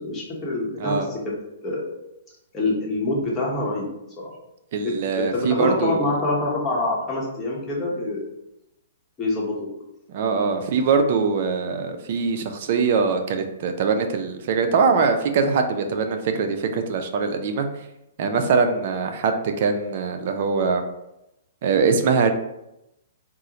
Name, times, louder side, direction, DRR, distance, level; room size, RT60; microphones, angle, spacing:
voice 1, 0.0-1.3 1.6-1.8 2.5-3.9 4.2-4.3 4.8-8.3 9.2-9.7, left 2 dB, 20° left, -4 dB, 0.9 m, -26 dB
voice 2, 4.7-6.0 10.1-17.7 18.2-20.8 21.6-22.3, right 5 dB, 50° right, 6 dB, 0.4 m, -22 dB
3.6 x 2.1 x 2.8 m, 0.87 s
hypercardioid pair, 145°, 0 cm